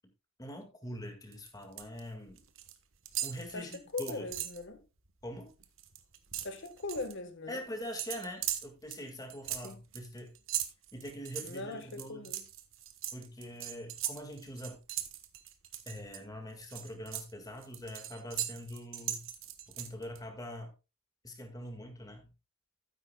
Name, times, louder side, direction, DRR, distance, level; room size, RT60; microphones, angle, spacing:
voice 1, 0.4-2.4 3.2-4.3 5.2-5.5 7.5-10.3 10.9-12.3 13.1-14.8 15.9-19.2 19.7-20.7 21.2-22.3, equal, 20° left, 1.8 m, -43 dB
sound 1, 1.3-2.0 2.3-2.8 3.1-4.6 5.1-5.2 5.5-7.1 8.0-16.2 16.6-20.2, right 12 dB, 65° right, 1.1 m, -39 dB
voice 2, 3.5-4.8 6.4-7.6 9.6-9.8 11.4-12.4, left 3 dB, 60° left, 1.3 m, -40 dB
12.5 x 9.8 x 2.2 m
head